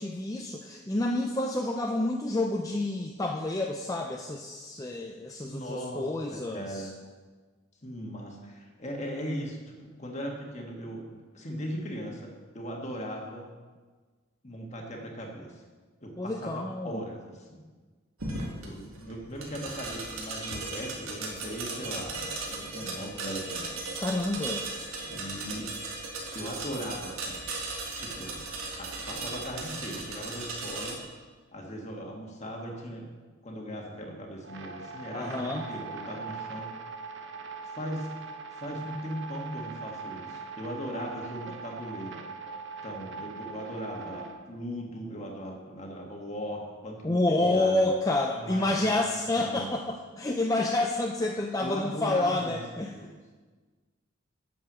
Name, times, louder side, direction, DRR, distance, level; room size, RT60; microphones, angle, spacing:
voice 1, 0.0-6.9 16.2-17.0 24.0-24.9 35.1-35.7 47.0-52.9, left 2 dB, 15° left, 1 dB, 0.4 m, -29 dB
voice 2, 5.4-6.9 7.8-13.4 14.4-15.6 16.0-17.6 18.6-23.8 25.1-25.7 26.3-27.4 28.0-28.4 28.8-31.0 31.5-33.1 33.4-36.7 37.6-38.1 38.5-42.2 42.8-47.9 48.3-49.0 49.3-49.7 51.6-52.6 52.9-53.1, equal, 35° left, 0 dB, 1.6 m, -38 dB
sound 1, 18.2-30.9, right 3 dB, 85° right, 1.9 m, -37 dB
sound 2, 34.4-44.3, right 4 dB, 55° right, 0.9 m, -41 dB
8.9 x 7.1 x 6.2 m, 1.4 s
head